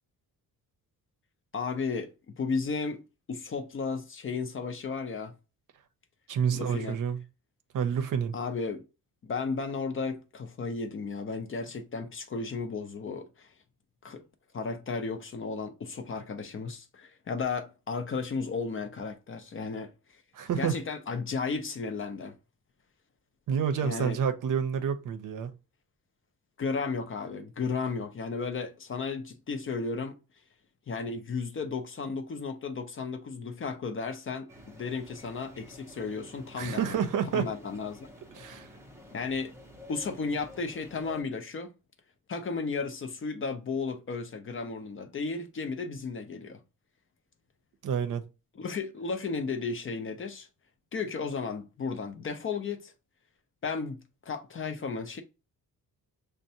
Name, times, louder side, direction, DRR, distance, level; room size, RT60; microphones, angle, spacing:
voice 1, 1.5-3.0 3.3-5.3 6.5-7.0 8.3-8.8 9.2-13.5 14.0-14.2 14.5-20.2 20.6-22.4 23.8-24.2 26.6-30.2 30.9-37.0 37.3-38.1 39.1-39.5 39.9-41.7 42.3-46.6 48.6-50.5 50.9-52.9 53.6-55.2, left 4 dB, 35° left, 0.5 m, -34 dB
voice 2, 6.3-7.2 7.7-8.3 20.3-20.8 23.5-25.5 36.6-37.5 38.4-38.7 47.8-48.2, right 7 dB, 60° right, 0.7 m, -29 dB
sound 1, 34.5-41.2, left 1 dB, 5° right, 0.6 m, -51 dB
6.3 x 2.1 x 2.7 m
cardioid pair, 150°, 36 cm